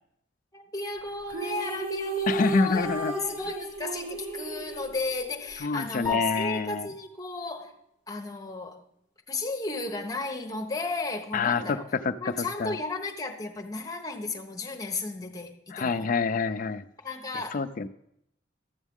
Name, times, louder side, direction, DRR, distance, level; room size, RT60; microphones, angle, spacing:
voice 1, 0.5-7.8 8.1-8.8 9.3-11.9 12.2-16.1 17.0-17.6, left 3 dB, 20° left, 3 dB, 0.9 m, -34 dB
sound 1, 1.3-5.6, right 3 dB, 85° right, 1.7 m, -34 dB
voice 2, 2.3-3.1 5.6-6.9 11.3-11.8 12.0-12.8 15.7-16.8 17.5-17.9, left 4 dB, 40° left, 11 dB, 0.4 m, -27 dB
sound 2, 6.0-7.1, left 4 dB, ahead, 3.4 m, -32 dB
12.5 x 7.2 x 3.6 m, 0.78 s
head